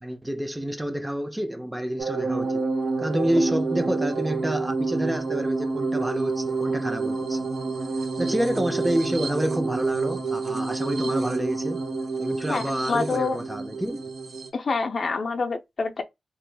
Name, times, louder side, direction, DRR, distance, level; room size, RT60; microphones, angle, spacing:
voice 1, 0.0-2.6 3.0-7.5 8.2-11.8 12.2-14.0, right 1 dB, 10° right, 0.6 m, -28 dB
sound 1, 2.0-14.5, right 3 dB, 80° right, 0.7 m, -28 dB
voice 2, 12.5-13.4 14.5-16.0, left 4 dB, 60° left, 0.4 m, -27 dB
2.9 x 2.4 x 3.3 m
wide cardioid pair, 95°, 0 cm